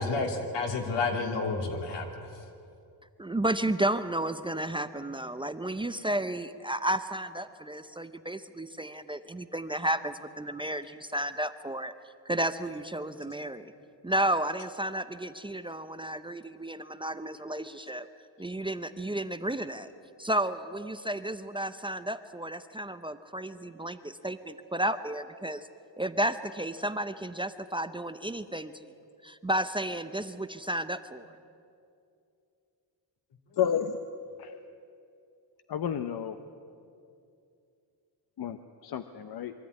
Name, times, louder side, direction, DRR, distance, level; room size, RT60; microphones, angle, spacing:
voice 1, 0.0-2.1, left 3 dB, 85° left, 2 dB, 2.9 m, -30 dB
voice 2, 3.2-11.9 12.3-13.7 14.0-18.1 18.4-19.9 20.2-25.7 26.0-28.8 29.2-31.3, right 1 dB, 10° right, 10 dB, 0.6 m, -32 dB
voice 3, 33.6-33.9 34.4-34.5 35.7-36.4 38.4-39.5, left 9 dB, 60° left, 9 dB, 0.9 m, -31 dB
23.5 x 13.5 x 9.7 m, 2.6 s
cardioid pair, 120°, 42 cm